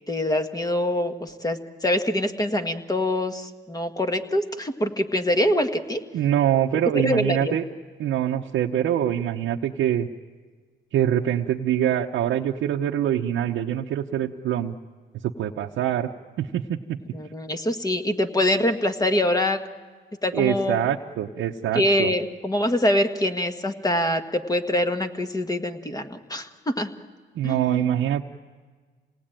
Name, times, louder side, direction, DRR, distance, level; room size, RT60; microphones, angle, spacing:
voice 1, 0.1-6.0 7.0-7.5 17.1-19.6 20.2-20.9 21.7-26.9 27.4-27.8, left 1 dB, 20° left, 7 dB, 1.6 m, -24 dB
voice 2, 6.1-7.6 8.0-10.1 10.9-14.7 15.2-16.1 16.4-17.0 20.3-22.1 27.3-28.2, right 10 dB, 75° right, 0 dB, 0.9 m, -24 dB
27.5 x 19.0 x 9.0 m, 1.5 s
cardioid pair, 90°, 20 cm